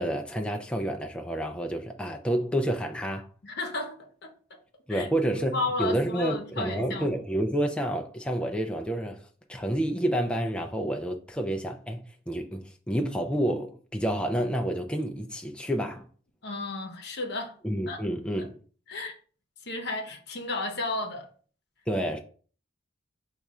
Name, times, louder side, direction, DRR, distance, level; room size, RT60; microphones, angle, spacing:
voice 1, 0.0-3.3 4.9-9.2 9.5-16.1 17.6-18.6 21.9-22.2, right 1 dB, 5° left, 0.3 m, -29 dB
voice 2, 3.4-4.3 4.9-5.1 5.3-7.1 16.4-17.6 17.9-18.1 18.4-18.5 18.9-19.2 19.6-21.3, left 2 dB, 60° left, 0.8 m, -33 dB
4.9 x 2.4 x 4.1 m
head